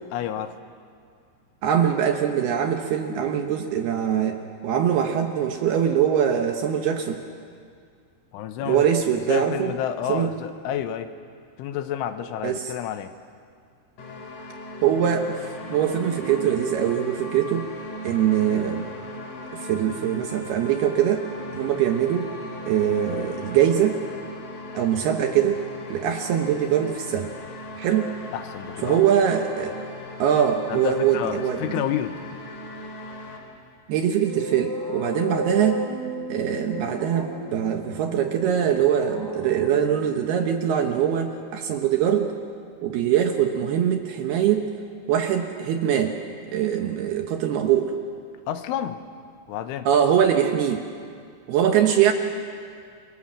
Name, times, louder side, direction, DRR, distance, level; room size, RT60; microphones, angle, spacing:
voice 1, 0.1-0.5 8.3-8.9 9.3-11.1 11.6-13.1 28.3-29.1 30.7-32.3 48.5-49.0 49.5-49.9, left 10 dB, 80° left, 9 dB, 3.4 m, -30 dB
voice 2, 1.6-7.2 8.6-9.7 10.1-10.3 12.4-12.7 14.8-15.4 15.7-17.7 18.0-18.8 19.5-21.2 21.5-22.3 22.7-24.0 24.7-25.6 25.9-27.3 27.8-28.1 28.8-29.8 30.2-31.8 33.9-35.8 36.3-42.3 42.8-44.7 45.1-46.2 46.5-47.9 49.9-50.8 51.5-52.1, right 9 dB, 70° right, 5 dB, 2.6 m, -22 dB
sound 1, 14.0-33.4, left 1 dB, 45° left, 4.0 m, -38 dB
sound 2, 33.9-41.7, equal, 25° right, 0.5 m, -35 dB
29.0 x 22.5 x 7.5 m, 2.2 s
omnidirectional pair, 5.6 m